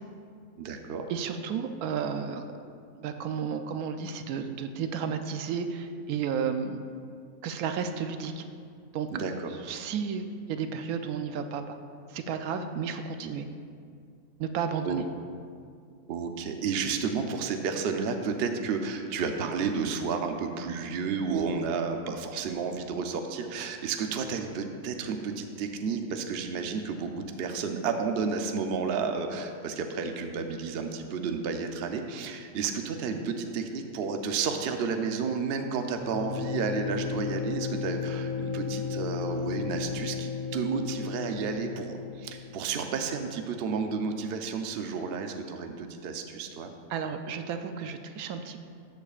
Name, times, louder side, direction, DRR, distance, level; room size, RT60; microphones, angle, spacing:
voice 1, 0.6-1.1 9.1-9.5 13.2-13.3 14.8-15.0 16.1-46.7, right 5 dB, 55° right, 5 dB, 0.7 m, -31 dB
voice 2, 1.1-2.4 3.0-6.8 7.4-8.4 8.9-9.1 9.6-11.8 12.1-13.4 14.4-15.0 46.9-48.6, right 6 dB, 85° right, 7 dB, 1.1 m, -32 dB
sound 1, 36.0-42.6, left 6 dB, 50° left, 2.3 m, -34 dB
13.5 x 8.1 x 2.4 m, 2.3 s
omnidirectional pair, 1.5 m